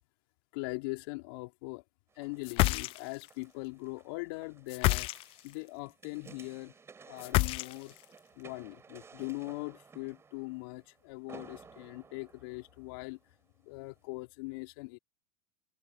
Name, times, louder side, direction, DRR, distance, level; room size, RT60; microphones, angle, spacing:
voice 1, 0.5-1.8 2.2-5.1 5.4-6.8 7.0-8.0 8.4-13.2 13.6-15.0, left 26 dB, 65° left, 3.4 m, -41 dB
sound 1, 2.1-13.4 13.9-14.0, right 5 dB, 20° right, 4.7 m, -56 dB
sound 2, 2.4-3.3 4.7-5.5 7.2-8.0, left 21 dB, 50° left, 0.6 m, -28 dB
hypercardioid pair, 100°, 13 cm